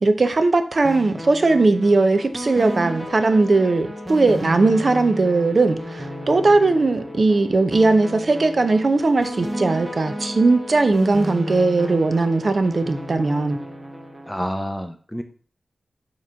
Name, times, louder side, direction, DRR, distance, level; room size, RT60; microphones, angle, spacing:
voice 1, 0.0-13.6, right 3 dB, 45° right, 9 dB, 0.7 m, -19 dB
sound 1, 0.8-14.4, equal, 15° right, 0.9 m, -33 dB
Wind instrument woodwind instrument, 3.3-12.5, left 6 dB, 70° left, 1.1 m, -43 dB
voice 2, 14.3-15.2, equal, 5° left, 6 dB, 0.6 m, -28 dB
7.3 x 3.1 x 5.5 m, 0.42 s
wide cardioid pair, 130°, 0 cm